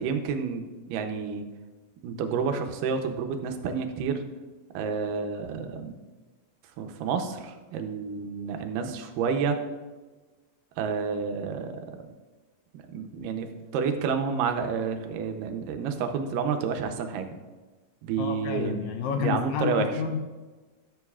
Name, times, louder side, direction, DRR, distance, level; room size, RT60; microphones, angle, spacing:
voice 1, 0.0-1.4 2.0-4.2 4.7-6.0 6.8-9.6 10.8-11.8 12.7-17.3 18.0-18.8 19.2-19.9, right 6 dB, 85° right, 6 dB, 2.4 m, -29 dB
voice 2, 18.2-20.3, left 7 dB, 80° left, 6 dB, 1.8 m, -30 dB
14.0 x 7.1 x 2.4 m, 1.3 s
omnidirectional pair, 3.7 m